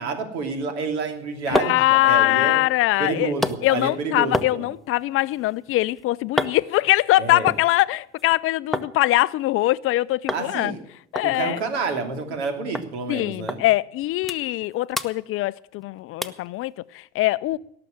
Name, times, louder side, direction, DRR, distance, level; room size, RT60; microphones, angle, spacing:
voice 1, 0.0-2.6 3.0-4.7 7.2-7.5 10.3-10.8 11.2-13.6, right 4 dB, 75° right, 3.0 m, -29 dB
sound 1, 1.0-8.9 9.2-9.9 10.3-10.5 10.7-10.8 11.1-12.5 12.7-12.9 13.5-13.6 14.0-14.6 14.9-15.8 16.2-16.5 17.0-17.1, left 1 dB, ahead, 0.9 m, -31 dB
voice 2, 1.5-3.3 3.6-10.7 11.1-11.6 13.1-17.6, left 17 dB, 40° left, 0.5 m, -22 dB
18.0 x 6.9 x 9.0 m
hypercardioid pair, 85°, 33 cm